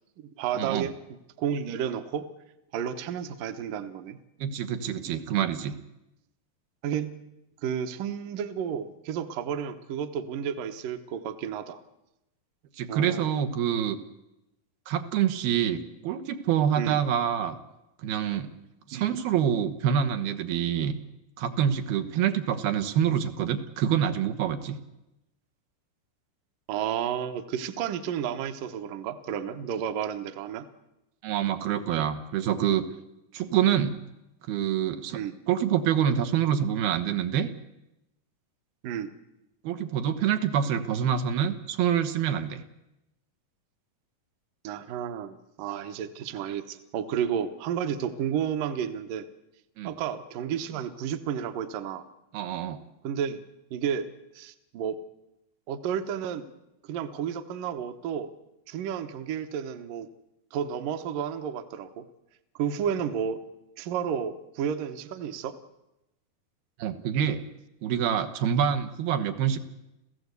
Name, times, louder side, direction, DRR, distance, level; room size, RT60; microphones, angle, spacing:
voice 1, 0.2-1.0 1.4-2.3 2.7-4.2 6.8-7.1 7.6-11.8 12.9-13.3 16.8-17.0 18.9-19.1 26.7-30.7 35.1-35.3 38.8-39.1 44.6-49.3 49.8-52.1 53.0-53.4 53.7-54.1 54.3-55.0 55.7-56.5 56.9-58.3 58.7-60.1 60.5-62.1 62.6-63.4 63.8-65.6, right 8 dB, 70° right, 9 dB, 2.6 m, -31 dB
voice 2, 4.4-5.8 12.8-14.0 14.9-17.6 18.0-18.5 18.9-21.0 21.4-24.8 31.2-32.8 33.3-34.0 34.5-35.2 35.5-37.5 39.6-42.6 49.8-49.9 52.3-52.8 66.8-67.5 67.8-69.6, right 9 dB, 90° right, 7 dB, 3.2 m, -26 dB
29.0 x 15.5 x 8.2 m, 0.91 s
omnidirectional pair, 4.2 m